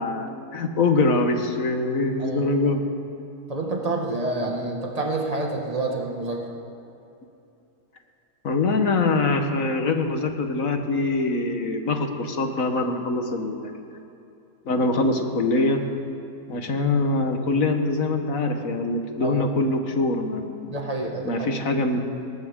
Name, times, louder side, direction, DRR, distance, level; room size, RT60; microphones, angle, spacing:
voice 1, 0.0-2.8 8.4-13.7 14.6-15.8 16.5-20.7 21.2-22.0, left 2 dB, 55° left, 5 dB, 1.6 m, -23 dB
voice 2, 2.2-2.5 3.5-6.4 19.2-19.4 20.7-21.5, right 2 dB, 25° right, 0 dB, 1.8 m, -28 dB
20.5 x 18.5 x 3.7 m, 2.8 s
omnidirectional pair, 1.7 m